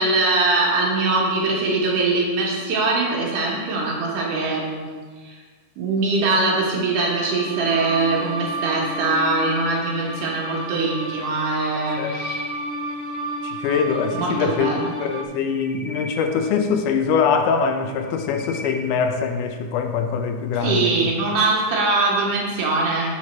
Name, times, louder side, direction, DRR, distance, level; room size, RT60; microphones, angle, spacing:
voice 1, 0.0-4.9 5.2-5.4 5.8-12.4 14.2-14.9 20.6-23.2, right 3 dB, 90° right, -3 dB, 3.0 m, -22 dB
sound 1, 7.0-15.3, right 1 dB, 65° right, 1.4 m, -32 dB
sound 2, 9.0-10.4 11.4-13.2 15.2-17.3 17.8-19.3, left 1 dB, 65° left, 3.5 m, -39 dB
voice 2, 13.4-21.1, left 6 dB, 85° left, 5 dB, 2.2 m, -23 dB
7.7 x 4.9 x 4.3 m, 1.5 s
omnidirectional pair, 3.5 m